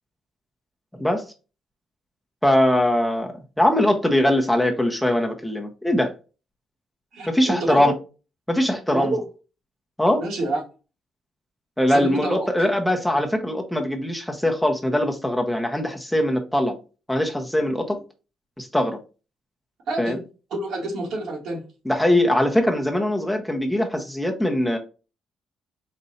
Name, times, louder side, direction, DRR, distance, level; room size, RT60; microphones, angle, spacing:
voice 1, 0.9-1.2 2.4-6.1 7.3-7.9 8.5-9.1 10.0-10.2 11.8-16.8 17.1-18.0 18.6-19.0 20.0-20.2 21.9-24.8, left 1 dB, 5° left, 3 dB, 0.8 m, -21 dB
voice 2, 7.1-8.0 8.9-9.3 10.2-10.6 11.9-12.5 19.9-20.2 20.5-21.7, right 2 dB, 80° right, -1 dB, 2.0 m, -28 dB
4.3 x 2.6 x 4.1 m, 0.33 s
cardioid pair, 90°, 0 cm